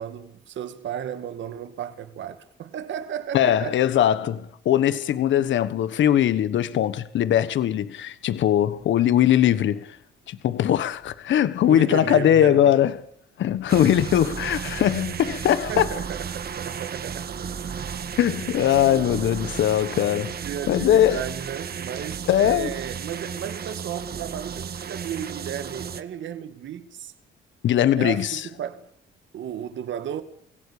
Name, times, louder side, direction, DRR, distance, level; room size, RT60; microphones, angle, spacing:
voice 1, 0.0-3.8 11.6-12.8 15.6-18.0 18.8-19.3 20.4-27.1 27.9-28.9 29.3-30.2, right 9 dB, 70° right, 2.2 m, -34 dB
voice 2, 3.3-9.9 10.3-13.0 13.4-15.9 18.2-20.4 20.7-21.2 22.3-22.7 27.6-28.4, left 11 dB, 70° left, 1.3 m, -21 dB
sound 1, 13.7-26.0, right 7 dB, 50° right, 1.8 m, -34 dB
25.5 x 17.0 x 8.7 m
cardioid pair, 90°, 20 cm